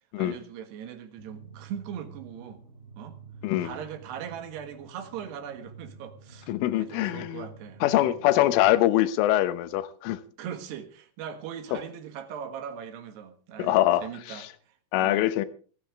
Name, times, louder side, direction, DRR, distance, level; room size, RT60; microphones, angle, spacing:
voice 1, 0.2-2.6 3.0-3.2 3.6-8.5 10.4-15.3, right 8 dB, 65° right, 3.3 m, -40 dB
sound 1, 1.2-8.8, right 4 dB, 45° right, 4.2 m, -49 dB
voice 2, 6.5-7.5 7.8-10.2 13.6-14.5 14.9-15.5, left 14 dB, 85° left, 3.5 m, -24 dB
27.0 x 10.0 x 3.6 m
omnidirectional pair, 5.6 m